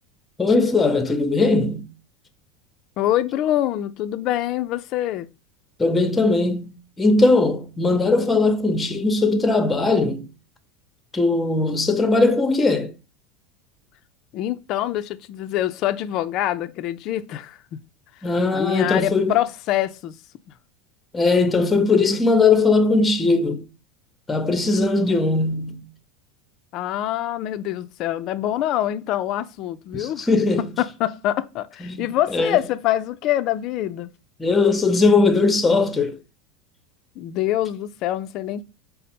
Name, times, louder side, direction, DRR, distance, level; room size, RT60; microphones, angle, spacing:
voice 1, 0.4-1.9 5.8-10.3 11.1-12.9 18.2-19.3 21.1-23.6 24.3-25.8 29.9-30.7 31.8-32.6 34.4-36.2, left 3 dB, 15° left, 0.7 m, -19 dB
voice 2, 3.0-5.3 14.3-17.8 18.2-20.2 25.0-25.3 26.7-30.3 30.6-34.1 37.2-38.6, left 13 dB, 50° left, 0.4 m, -25 dB
5.0 x 2.0 x 4.3 m
supercardioid pair, 115°, 0 cm